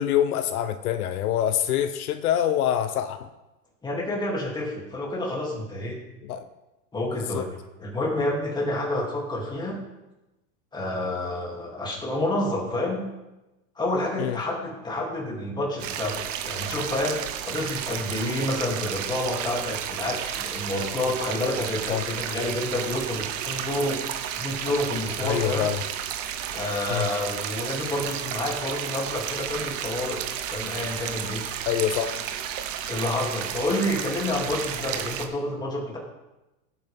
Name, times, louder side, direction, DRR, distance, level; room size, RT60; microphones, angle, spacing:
voice 1, 0.0-3.3 6.2-6.5 7.1-7.5 14.2-14.4 21.9-22.0 25.2-25.8 26.9-27.1 31.6-32.3, left 10 dB, 75° left, 9 dB, 1.0 m, -25 dB
voice 2, 3.8-6.0 6.9-7.5 7.8-9.8 10.7-13.0 13.8-17.2 17.4-24.0 24.4-25.7 26.5-30.2 30.5-31.4 32.9-36.0, left 1 dB, 10° left, -3 dB, 2.8 m, -29 dB
sound 1, 15.8-35.3, right 10 dB, 60° right, 1.3 m, -32 dB
17.0 x 8.9 x 3.6 m, 1.0 s
supercardioid pair, 155°, 44 cm